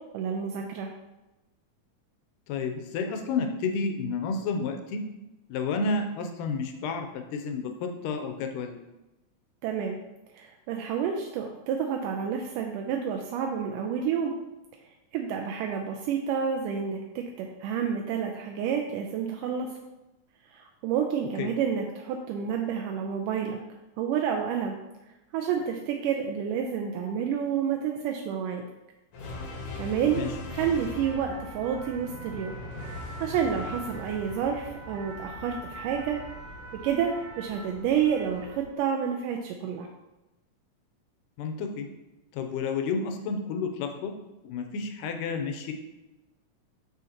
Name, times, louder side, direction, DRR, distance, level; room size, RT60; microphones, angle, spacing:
voice 1, 0.1-0.9 9.6-10.0 10.3-14.3 15.1-19.7 20.5-23.6 24.0-24.8 25.3-28.6 29.8-30.2 30.5-32.6 33.2-36.2 36.8-39.9, right 7 dB, 85° right, 2 dB, 2.1 m, -29 dB
voice 2, 2.5-5.0 5.5-8.8 21.4-21.5 30.2-30.3 41.4-41.9 42.3-44.1 44.4-45.7, left 4 dB, 85° left, 5 dB, 2.3 m, -31 dB
sound 1, 29.1-37.7, left 2 dB, 60° left, 1.8 m, -41 dB
sound 2, 31.0-38.7, right 2 dB, 70° right, 2.1 m, -43 dB
6.3 x 6.3 x 2.9 m, 0.98 s
omnidirectional pair, 3.7 m